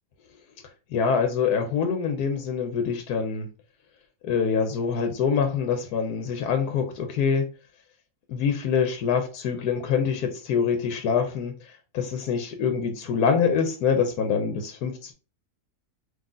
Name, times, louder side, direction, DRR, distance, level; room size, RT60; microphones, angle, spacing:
voice 1, 0.9-3.5 4.2-7.5 8.3-15.1, left 6 dB, 75° left, 5 dB, 1.2 m, -25 dB
4.0 x 2.9 x 3.7 m, 0.34 s
omnidirectional pair, 1.7 m